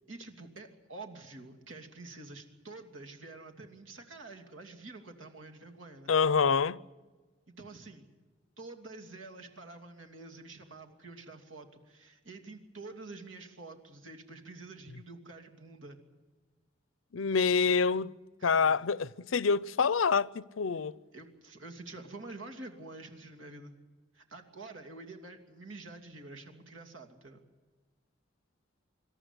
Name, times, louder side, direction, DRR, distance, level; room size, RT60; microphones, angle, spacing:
voice 1, 0.1-6.1 7.6-8.0 8.6-16.0 18.4-18.7 21.1-23.7 24.1-27.4, right 3 dB, 85° right, 2.9 m, -48 dB
voice 2, 6.1-6.8 17.1-18.1 18.4-20.9, left 5 dB, 90° left, 0.6 m, -26 dB
26.0 x 13.5 x 10.0 m
head